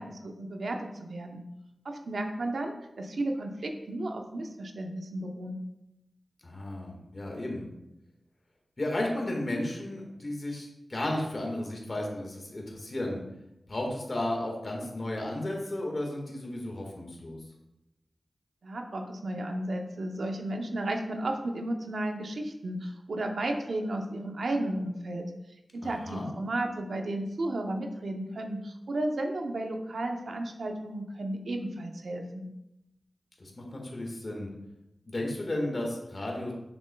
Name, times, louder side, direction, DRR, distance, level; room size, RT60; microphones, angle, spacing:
voice 1, 0.0-1.4 1.8-5.6 18.6-25.2 25.7-32.5, right 1 dB, 75° right, 3 dB, 0.7 m, -33 dB
voice 2, 6.4-7.7 8.8-13.2 13.7-17.4 25.8-26.3 33.4-34.5 35.1-36.5, left 1 dB, 50° left, -1 dB, 1.6 m, -33 dB
7.1 x 6.5 x 2.3 m, 0.90 s
cardioid pair, 50°, 0 cm